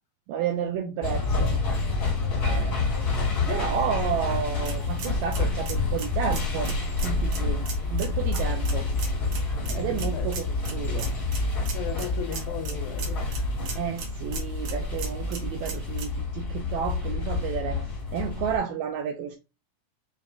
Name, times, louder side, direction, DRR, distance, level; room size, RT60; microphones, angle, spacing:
voice 1, 0.3-1.6 1.9-6.7 7.0-7.6 7.9-8.9 9.7-11.1 13.7-19.4, right 8 dB, 85° right, 1.6 m, -32 dB
sound 1, 1.0-18.6, left 3 dB, 40° left, 1.6 m, -28 dB
sound 2, 4.5-16.1, right 5 dB, 65° right, 2.1 m, -41 dB
voice 2, 9.6-10.3 10.9-11.1 11.7-13.2, left 9 dB, 75° left, 2.1 m, -36 dB
5.4 x 2.4 x 3.4 m
omnidirectional pair, 3.8 m